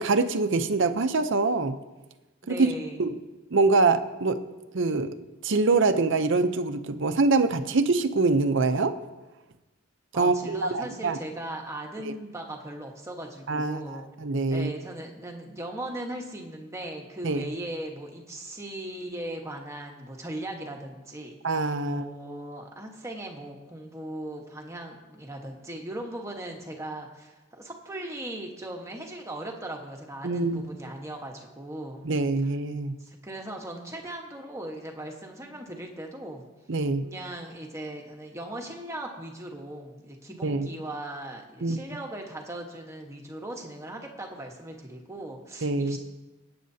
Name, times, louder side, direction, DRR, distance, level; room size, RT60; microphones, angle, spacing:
voice 1, 0.0-1.8 2.5-2.7 3.0-3.1 3.5-4.4 4.7-5.1 5.4-8.9 10.1-11.2 12.0-12.1 13.5-14.7 17.2-17.4 21.4-22.0 30.2-30.7 32.0-32.9 36.7-37.0 40.4-40.7 41.6-41.8 45.6-46.0, right 3 dB, 55° right, 10 dB, 0.7 m, -24 dB
voice 2, 2.4-3.1 10.1-14.1 14.5-21.4 21.8-32.1 33.0-36.5 37.0-46.0, right 1 dB, 15° right, 1 dB, 1.2 m, -38 dB
26.0 x 8.6 x 2.8 m, 1.1 s
head